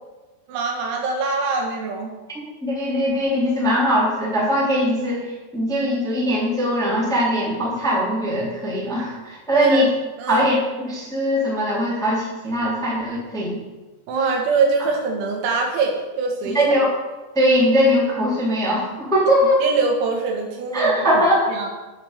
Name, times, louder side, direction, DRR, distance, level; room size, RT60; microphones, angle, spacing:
voice 1, 0.5-2.1 9.5-9.9 10.2-10.5 14.1-16.7 19.6-21.0 21.5-21.7, right 4 dB, 75° right, 1 dB, 4.2 m, -23 dB
voice 2, 2.6-5.2 5.5-9.9 10.3-13.6 16.5-16.9 17.3-19.6 20.7-21.4, equal, ahead, -5 dB, 1.8 m, -20 dB
9.7 x 7.2 x 6.5 m, 1.2 s
omnidirectional pair, 5.5 m